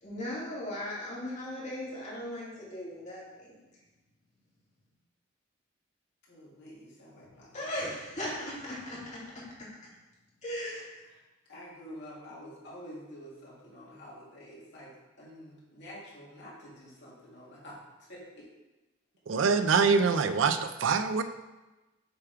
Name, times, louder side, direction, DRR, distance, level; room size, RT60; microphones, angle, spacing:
voice 1, 0.0-3.5 7.5-9.7 10.4-10.8, left 1 dB, 40° left, -6 dB, 2.0 m, -38 dB
voice 2, 6.3-7.7 11.5-18.5, equal, 65° left, -6 dB, 2.2 m, -48 dB
voice 3, 19.3-21.2, right 5 dB, 85° right, 10 dB, 0.4 m, -24 dB
6.8 x 3.5 x 4.6 m, 1.1 s
head